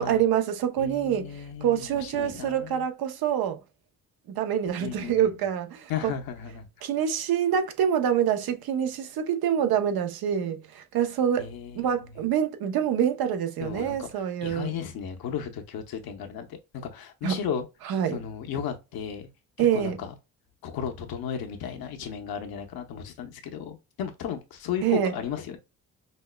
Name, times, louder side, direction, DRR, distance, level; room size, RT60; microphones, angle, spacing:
voice 1, 0.0-1.3 1.6-3.6 4.3-6.1 6.8-11.5 11.7-14.7 17.2-17.4 17.8-18.2 19.6-20.0 24.8-25.1, right 9 dB, 85° right, 0.7 m, -26 dB
voice 2, 0.8-2.8 4.8-5.3 5.9-6.7 11.4-12.1 13.6-14.1 14.4-17.7 18.1-19.3 19.6-20.1 20.6-25.6, left 8 dB, 85° left, 0.9 m, -35 dB
5.3 x 2.1 x 2.2 m
cardioid pair, 85°, 36 cm